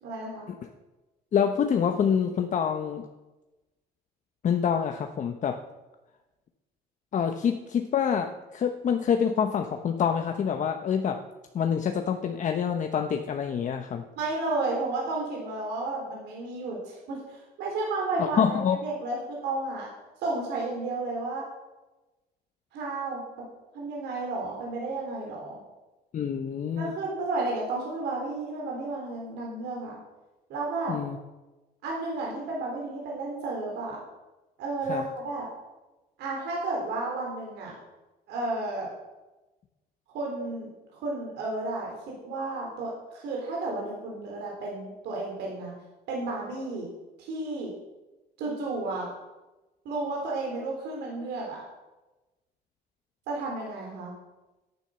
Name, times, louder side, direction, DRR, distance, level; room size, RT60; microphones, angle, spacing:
voice 1, 0.0-0.5 14.2-19.9 20.2-21.5 22.7-23.2 23.7-25.6 26.8-30.0 30.5-31.0 31.8-34.0 34.6-35.5 36.2-37.7 38.3-38.9 40.1-45.7 46.1-46.9 47.2-47.7 48.4-49.1 49.8-51.6 53.3-54.1, right 2 dB, 75° right, -2 dB, 4.0 m, -32 dB
voice 2, 1.3-3.1 4.4-5.6 7.1-11.2 11.5-14.0 18.2-18.8 26.1-26.9 30.9-31.2 34.9-35.0, left 7 dB, 45° left, 6 dB, 1.0 m, -26 dB
10.5 x 9.8 x 6.6 m, 1.1 s
cardioid pair, 90°, 17 cm